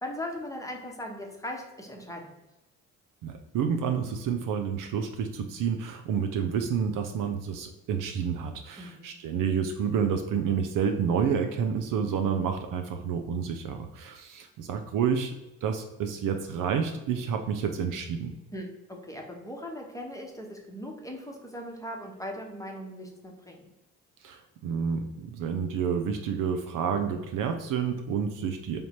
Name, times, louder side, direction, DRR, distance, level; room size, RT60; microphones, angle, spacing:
voice 1, 0.0-2.4 8.8-9.2 18.5-23.6, left 1 dB, 10° left, 1 dB, 1.0 m, -39 dB
voice 2, 3.2-15.3 15.6-18.3 24.2-28.8, right 7 dB, 60° right, 6 dB, 0.6 m, -29 dB
3.4 x 2.8 x 4.2 m, 1.0 s
hypercardioid pair, 55°, 38 cm